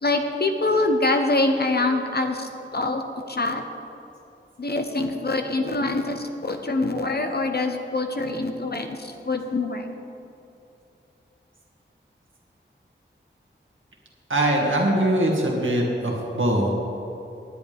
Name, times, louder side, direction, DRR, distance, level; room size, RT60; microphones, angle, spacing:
voice 1, 0.0-3.0 3.3-3.6 4.6-9.9, left 2 dB, 55° left, 4 dB, 0.9 m, -25 dB
voice 2, 14.3-16.7, right 1 dB, 80° right, -1 dB, 2.1 m, -22 dB
18.0 x 10.0 x 3.5 m, 2.7 s
wide cardioid pair, 60°, 20 cm